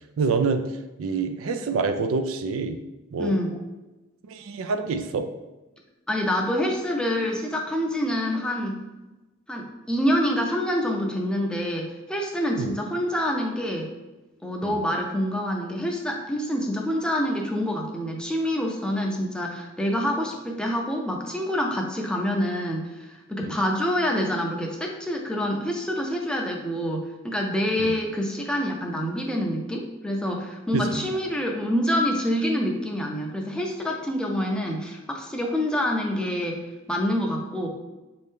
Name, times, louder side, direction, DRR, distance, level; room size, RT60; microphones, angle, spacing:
voice 1, 0.2-0.7 1.0-2.8 3.1-3.4 4.3-5.3 12.6-12.7 14.6-14.8 23.4-23.5 27.8-27.9 30.7-31.1, right 4 dB, 85° right, 8 dB, 0.4 m, -26 dB
voice 2, 3.2-3.6 6.1-8.8 9.5-13.9 14.4-36.6 36.9-37.7, equal, 5° left, 0 dB, 0.4 m, -26 dB
4.2 x 2.7 x 3.6 m, 1.1 s
head